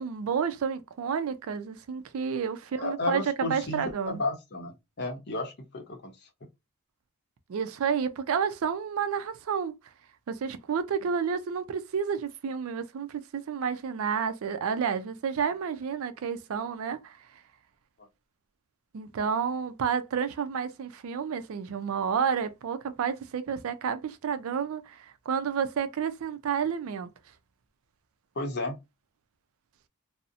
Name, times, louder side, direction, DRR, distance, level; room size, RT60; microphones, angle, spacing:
voice 1, 0.0-4.2 7.5-9.7 10.3-17.2 18.9-27.1, right 7 dB, 65° right, 0.4 m, -30 dB
voice 2, 2.7-6.1 28.4-28.8, left 2 dB, 50° left, 0.7 m, -33 dB
2.5 x 2.0 x 2.6 m
head